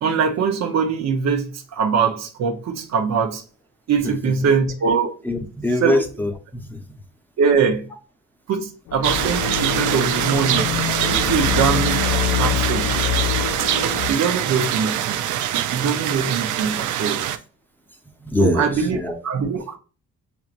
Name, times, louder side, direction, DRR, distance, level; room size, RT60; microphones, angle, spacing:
voice 1, 0.0-3.4 3.9-5.1 5.8-6.0 7.4-7.9 8.5-10.7 11.1-12.9 14.1-15.4 15.7-17.2 18.4-19.0 19.2-19.8, right 6 dB, 60° right, 0.9 m, -22 dB
voice 2, 5.2-7.0 18.2-19.2, left 1 dB, 5° left, 0.8 m, -23 dB
sound 1, 8.9-14.1, left 11 dB, 70° left, 0.5 m, -25 dB
sound 2, 9.0-17.4, right 11 dB, 80° right, 0.5 m, -23 dB
7.0 x 3.0 x 2.5 m
cardioid pair, 90°, 30 cm